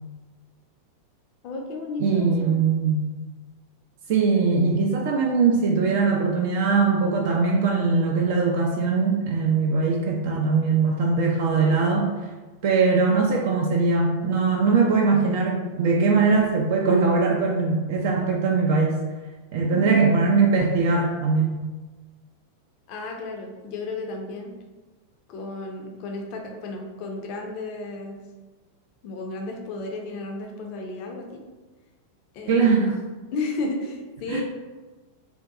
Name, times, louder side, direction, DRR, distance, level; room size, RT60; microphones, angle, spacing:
voice 1, 1.4-2.6 19.7-20.1 22.9-24.5 25.3-28.2 29.0-31.4 32.3-32.9 33.3-34.4, left 2 dB, 45° left, 2 dB, 0.4 m, -33 dB
voice 2, 2.0-3.1 4.1-12.1 12.6-19.0 19.5-21.6 32.5-32.9 34.3-34.4, right 4 dB, 50° right, 0 dB, 0.3 m, -21 dB
2.6 x 2.2 x 2.4 m, 1.3 s
figure-of-eight pair, 90°, 0 cm